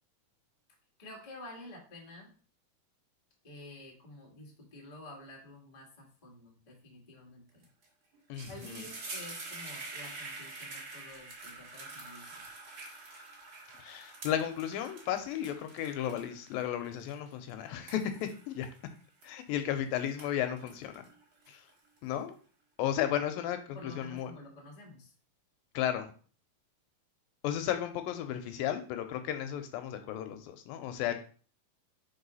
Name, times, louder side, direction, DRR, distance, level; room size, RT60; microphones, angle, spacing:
voice 1, 1.0-2.3 3.4-7.7 8.5-12.5 23.7-25.1, left 2 dB, 25° left, -1 dB, 0.8 m, -50 dB
sound 1, 7.6-7.9 8.1-19.7 20.0-22.0, right 3 dB, 40° right, 2.0 m, -47 dB
voice 2, 8.3-8.8 13.8-18.7 19.2-21.1 21.5-21.6 22.0-22.4 22.8-24.3 25.7-26.1 27.4-31.1, left 10 dB, 80° left, 8 dB, 2.3 m, -34 dB
4.8 x 4.3 x 5.3 m, 0.40 s
omnidirectional pair, 4.2 m